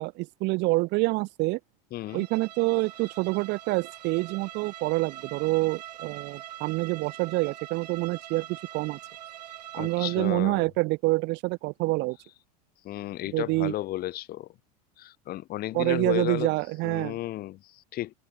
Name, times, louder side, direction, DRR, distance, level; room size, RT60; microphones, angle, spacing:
voice 1, 0.0-1.6 2.1-9.0 9.7-12.2 13.3-13.7 15.7-17.1, right 23 dB, 60° right, 5.6 m, -27 dB
voice 2, 1.9-2.3 9.7-10.7 12.8-14.5 15.0-16.5 16.8-18.2, left 15 dB, 50° left, 7.3 m, -33 dB
Bowed string instrument, 2.1-10.4, right 12 dB, 85° right, 7.5 m, -44 dB
open air
hypercardioid pair, 100°, 21 cm